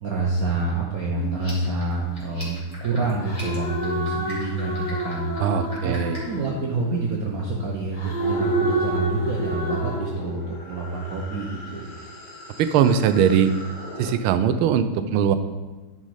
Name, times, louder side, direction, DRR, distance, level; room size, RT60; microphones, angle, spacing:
voice 1, 0.0-5.3 5.8-5.9 6.2-11.9, right 3 dB, 55° right, -3 dB, 1.2 m, -27 dB
sound 1, 1.1-2.6 3.2-7.1 7.9-10.0, left 2 dB, 35° left, 0.8 m, -32 dB
sound 2, 1.3-6.4, left 1 dB, 15° left, 2.3 m, -42 dB
voice 2, 5.4-6.2 12.6-13.5 14.0-15.3, right 8 dB, 80° right, 11 dB, 1.4 m, -20 dB
sound 3, 8.2-14.1, right 2 dB, 85° left, 2.9 m, -31 dB
9.6 x 5.2 x 4.8 m, 1.2 s
omnidirectional pair, 2.4 m